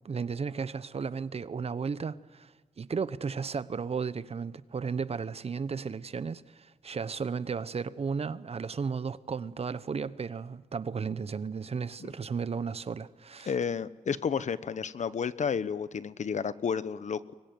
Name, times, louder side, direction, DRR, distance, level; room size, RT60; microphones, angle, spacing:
voice 1, 0.0-13.5, right 5 dB, 50° right, 0.9 m, -34 dB
voice 2, 13.4-17.3, left 6 dB, 60° left, 1.0 m, -31 dB
24.5 x 21.5 x 9.4 m
cardioid pair, 75°, 14 cm